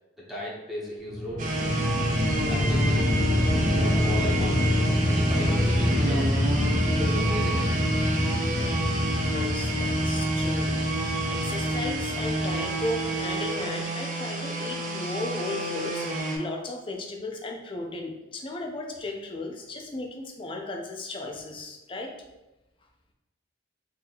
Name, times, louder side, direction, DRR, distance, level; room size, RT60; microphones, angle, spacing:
voice 1, 0.2-1.7 2.5-3.1 3.7-4.6 5.0-6.4 6.8-7.7, equal, ahead, -6 dB, 0.7 m, -36 dB
sound 1, 1.0-13.4, left 1 dB, 80° left, 1.0 m, -26 dB
sound 2, 1.4-16.4, right 1 dB, 45° right, 0.6 m, -29 dB
voice 2, 9.1-22.1, left 2 dB, 30° left, 2 dB, 0.5 m, -35 dB
2.9 x 2.7 x 3.8 m, 1.0 s
head